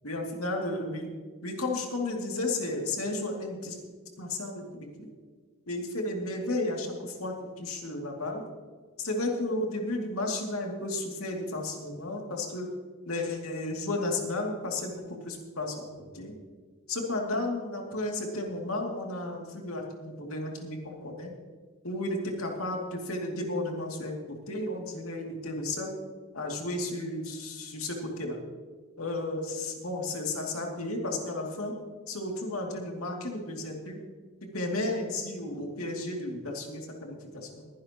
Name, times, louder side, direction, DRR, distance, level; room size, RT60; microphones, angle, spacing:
voice 1, 0.0-1.1 1.4-3.8 4.2-5.1 5.7-8.4 9.0-12.7 13.1-16.3 16.9-21.3 21.8-26.0 26.3-28.4 29.0-31.7 32.1-34.0 34.4-37.7, left 2 dB, 70° left, 0 dB, 2.5 m, -33 dB
21.5 x 11.0 x 3.0 m, 1.5 s
head